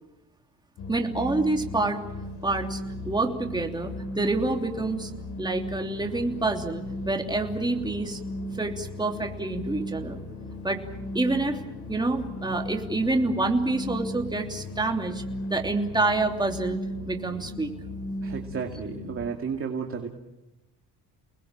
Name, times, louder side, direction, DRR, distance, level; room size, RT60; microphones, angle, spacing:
sound 1, 0.8-19.3, left 1 dB, 70° left, 4.9 m, -36 dB
voice 1, 0.9-2.0 2.4-2.8 3.0-5.1 5.4-8.2 8.5-10.2 10.6-10.8 11.1-11.6 11.9-15.2 15.5-17.7, right 2 dB, 10° right, 3 dB, 3.0 m, -27 dB
voice 2, 18.2-20.1, right 6 dB, 35° right, 2 dB, 2.5 m, -32 dB
30.0 x 20.0 x 7.5 m, 0.99 s
cardioid pair, 120°, 39 cm